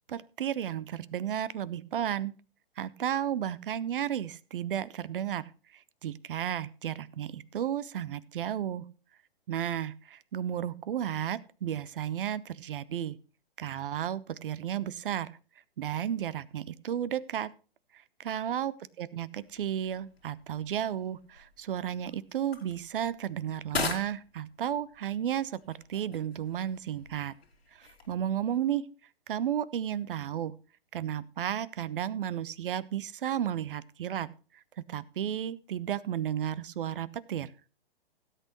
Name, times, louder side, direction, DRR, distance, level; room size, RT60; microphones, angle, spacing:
voice 1, 0.1-2.3 2.8-5.4 5.7-8.9 9.5-13.2 13.6-15.3 15.8-17.5 18.2-27.3 27.7-28.9 29.3-30.5 30.9-34.3 34.9-37.5, right 10 dB, 60° right, 18 dB, 0.9 m, -33 dB
sound 1, 19.4-28.6, left 4 dB, 85° left, 2.9 m, -42 dB
17.0 x 8.5 x 3.0 m, 0.35 s
hypercardioid pair, 125°, 30 cm